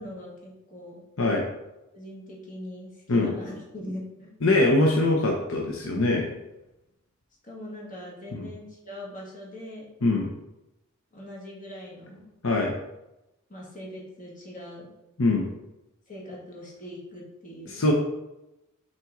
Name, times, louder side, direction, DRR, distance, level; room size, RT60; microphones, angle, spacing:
voice 1, 0.0-1.0 1.9-4.3 7.4-9.9 11.1-12.2 13.5-14.9 16.1-17.8, left 1 dB, 40° left, -3 dB, 1.9 m, -41 dB
voice 2, 4.4-6.3 8.3-8.5 10.0-10.3 12.4-12.7 15.2-15.5 17.7-17.9, left 2 dB, 65° left, -1 dB, 0.9 m, -23 dB
5.8 x 4.5 x 3.7 m, 0.92 s
head